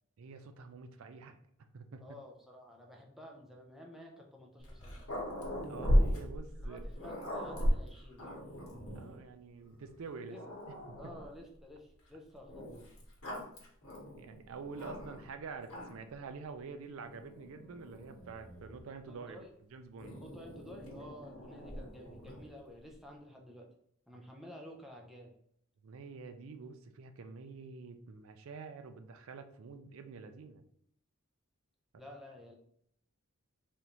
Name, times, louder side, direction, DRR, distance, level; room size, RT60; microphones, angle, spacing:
voice 1, 0.2-1.4 1.7-2.2 5.6-6.9 8.9-10.4 10.9-11.0 14.2-19.4 19.7-20.1 25.8-30.6, right 4 dB, 70° right, 8 dB, 0.4 m, -47 dB
voice 2, 2.0-5.0 6.6-8.4 10.3-10.4 11.0-12.7 19.1-19.5 20.2-23.7 24.1-25.3 32.0-32.6, left 1 dB, ahead, 0 dB, 0.5 m, -52 dB
Growling, 4.6-9.2 9.9-10.0 10.3-11.4 12.5-15.3 15.6-16.2 17.0-18.9 20.0-22.5, equal, 70° left, 1.1 m, -36 dB
3.4 x 2.6 x 2.9 m, 0.69 s
head